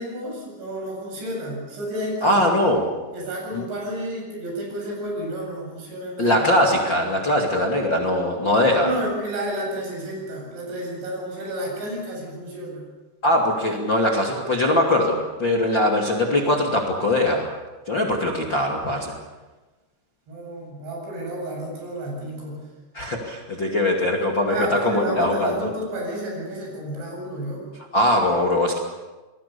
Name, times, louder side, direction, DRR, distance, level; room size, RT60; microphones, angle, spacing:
voice 1, 0.0-2.4 3.1-6.7 8.8-12.9 20.3-22.6 24.5-27.7, right 1 dB, 75° right, 0 dB, 10.0 m, -31 dB
voice 2, 2.2-2.9 6.2-8.9 13.2-17.5 17.9-19.1 22.9-24.5 24.8-25.7 27.9-28.8, left 1 dB, 35° left, 0 dB, 2.3 m, -21 dB
27.0 x 21.5 x 7.0 m, 1.2 s
omnidirectional pair, 5.2 m